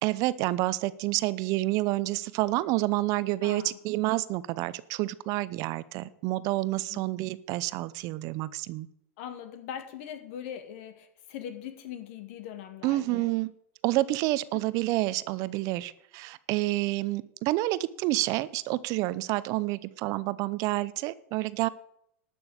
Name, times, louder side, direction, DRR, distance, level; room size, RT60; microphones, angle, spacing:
voice 1, 0.0-8.9 12.8-13.5 13.8-21.7, right 18 dB, 50° right, 17 dB, 0.7 m, -29 dB
voice 2, 3.4-3.8 6.9-7.1 9.2-13.2 14.5-14.6, left 9 dB, 65° left, 9 dB, 2.0 m, -41 dB
12.0 x 6.3 x 8.8 m, 0.74 s
hypercardioid pair, 115°, 8 cm